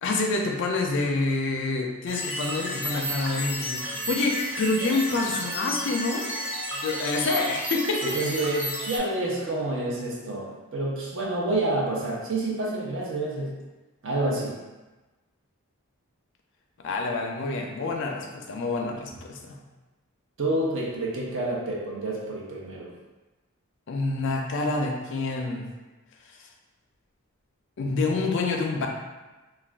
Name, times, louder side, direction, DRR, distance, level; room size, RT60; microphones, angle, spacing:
voice 1, 0.0-6.3 6.8-8.2 9.3-9.4 16.8-19.6 23.9-25.7 27.8-28.9, left 3 dB, 55° left, 2 dB, 0.4 m, -27 dB
sound 1, 2.1-9.0, equal, 5° right, 0.4 m, -32 dB
voice 2, 8.0-13.6 14.0-14.6 20.4-22.9, right 2 dB, 55° right, -3 dB, 0.6 m, -28 dB
2.4 x 2.2 x 3.3 m, 1.2 s
head